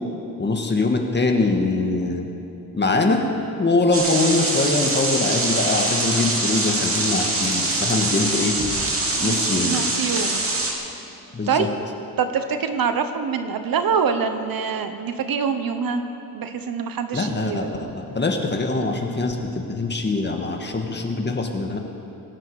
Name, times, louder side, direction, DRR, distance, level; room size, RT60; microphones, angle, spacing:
voice 1, 0.4-2.3 2.7-3.2 3.6-8.5 9.2-9.9 11.3-11.7 17.1-21.8, left 3 dB, 30° left, 3 dB, 1.8 m, -23 dB
sound 1, 3.9-10.7, right 2 dB, 35° right, 2.8 m, -23 dB
voice 2, 9.2-10.4 11.5-11.7 12.2-16.0 16.3-17.9, right 6 dB, 65° right, 8 dB, 1.2 m, -25 dB
24.5 x 11.5 x 5.0 m, 2.9 s
cardioid pair, 105°, 38 cm